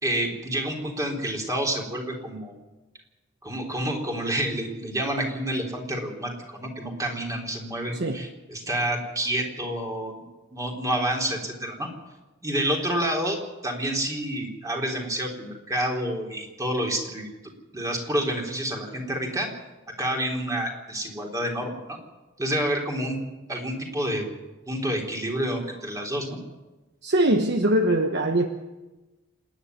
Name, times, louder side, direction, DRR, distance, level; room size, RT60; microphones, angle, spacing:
voice 1, 0.0-2.5 3.4-10.2 10.5-11.9 12.4-13.4 13.6-17.3 17.7-19.5 20.0-22.0 22.4-23.2 23.5-24.3 24.7-26.4, right 1 dB, 15° right, 1 dB, 3.7 m, -28 dB
voice 2, 27.0-28.5, right 1 dB, 55° right, 6 dB, 1.2 m, -22 dB
27.0 x 10.0 x 9.6 m, 1.1 s
head